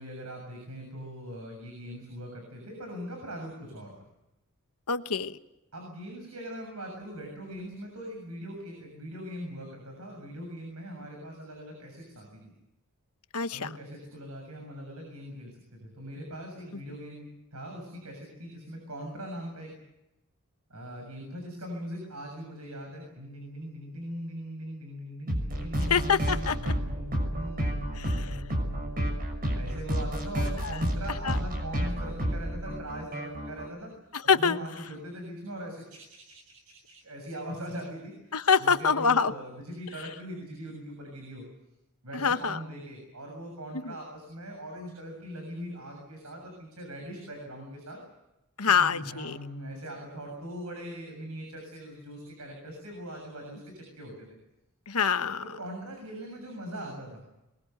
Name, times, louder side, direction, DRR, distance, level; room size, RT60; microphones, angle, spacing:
voice 1, 0.0-4.1 5.7-12.5 13.5-19.8 20.7-29.0 29.5-38.3 38.6-41.5 42.0-48.0 48.7-54.3 55.4-57.2, equal, 90° right, 3 dB, 7.2 m, -41 dB
voice 2, 4.9-5.4 13.3-13.7 25.9-26.7 28.0-28.4 31.2-31.4 34.3-34.6 38.3-39.3 42.1-42.6 43.8-43.9 48.6-49.4 54.9-55.4, left 6 dB, 85° left, 10 dB, 1.2 m, -25 dB
sound 1, 25.3-33.7, equal, 40° right, 6.3 m, -31 dB
23.0 x 22.0 x 8.0 m, 0.92 s
head